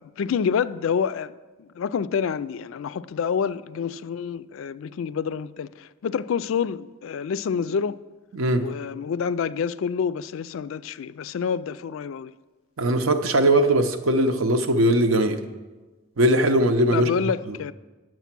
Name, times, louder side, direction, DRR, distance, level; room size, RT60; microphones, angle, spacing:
voice 1, 0.0-1.3 1.6-8.0 8.6-12.3 16.9-17.7, left 6 dB, 75° left, 0.3 m, -27 dB
voice 2, 8.3-8.7 12.8-15.4 16.2-17.1 17.5-17.6, right 1 dB, 80° right, 0.8 m, -20 dB
9.2 x 7.7 x 5.9 m
head